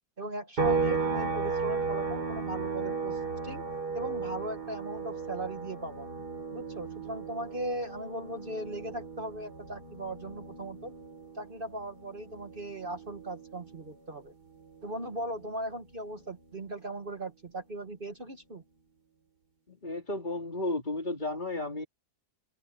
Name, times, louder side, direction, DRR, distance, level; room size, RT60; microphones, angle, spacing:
voice 1, 0.2-3.6 3.9-6.1 6.5-10.9 11.3-14.3 14.8-18.6, right 1 dB, 35° right, 1.3 m, -38 dB
sound 1, 0.6-14.1 14.5-16.7, right 4 dB, 85° right, 4.9 m, -35 dB
voice 2, 19.7-21.9, left 2 dB, 30° left, 3.4 m, -33 dB
omnidirectional pair, 1.7 m